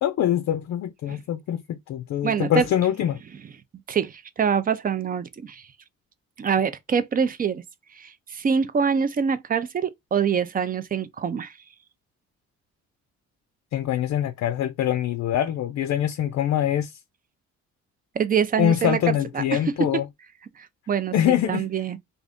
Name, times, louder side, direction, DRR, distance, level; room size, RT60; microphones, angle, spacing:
voice 1, 0.0-3.2 13.7-16.9 18.6-20.0 21.1-21.7, left 11 dB, 60° left, 0.5 m, -24 dB
voice 2, 2.2-2.7 3.9-5.6 6.4-7.6 8.0-11.5 18.2-19.9 20.6-21.1 21.5-22.0, right 6 dB, 30° right, 0.4 m, -25 dB
2.5 x 2.5 x 3.4 m
cardioid pair, 90°, 30 cm